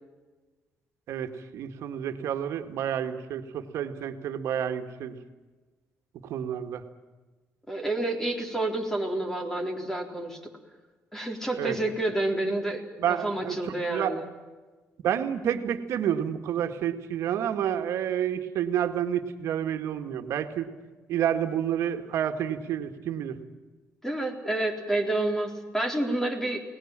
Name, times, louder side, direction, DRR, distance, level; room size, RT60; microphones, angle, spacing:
voice 1, 1.1-5.2 6.3-6.8 11.6-11.8 13.0-14.2 15.0-20.7 21.1-23.4, right 9 dB, 80° right, 6 dB, 1.9 m, -29 dB
voice 2, 7.7-10.5 11.1-14.2 24.0-26.6, right 2 dB, 10° left, 4 dB, 4.0 m, -29 dB
29.0 x 19.0 x 7.6 m, 1.3 s
cardioid pair, 120°, 5 cm